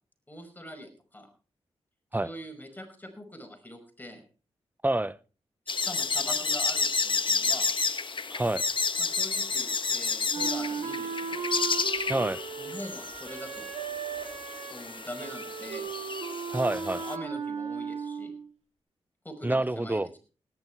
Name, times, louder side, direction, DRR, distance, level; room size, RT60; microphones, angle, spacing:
voice 1, 0.3-1.3 2.2-4.2 5.7-7.7 9.0-11.4 12.6-13.7 14.7-15.9 16.9-18.3 19.2-20.2, equal, 15° left, 5.3 m, -43 dB
voice 2, 4.8-5.2 8.3-8.6 12.1-12.4 16.5-17.0 19.4-20.1, right 2 dB, 15° right, 0.7 m, -27 dB
sound 1, 5.7-17.2, left 4 dB, 50° left, 1.2 m, -31 dB
Wind instrument woodwind instrument, 10.3-18.5, right 6 dB, 85° right, 3.0 m, -36 dB
17.5 x 11.0 x 4.6 m
cardioid pair, 50°, 11 cm